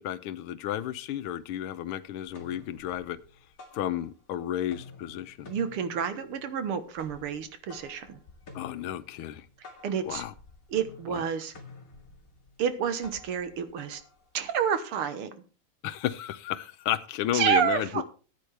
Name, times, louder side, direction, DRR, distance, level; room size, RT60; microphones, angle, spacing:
voice 1, 0.0-3.2 3.7-5.5 8.5-9.5 10.0-10.3 11.1-11.2 15.8-18.0, left 11 dB, 80° left, 13 dB, 1.6 m, -32 dB
sound 1, 0.8-0.9 1.2-1.9 2.2-4.4 4.6-14.8, left 3 dB, 40° left, 2.5 m, -51 dB
voice 2, 5.5-8.2 9.8-10.2 10.7-11.5 12.6-14.0 14.3-15.3 17.3-18.0, right 8 dB, 80° right, 10 dB, 2.1 m, -29 dB
14.5 x 9.4 x 3.3 m, 0.35 s
omnidirectional pair, 2.4 m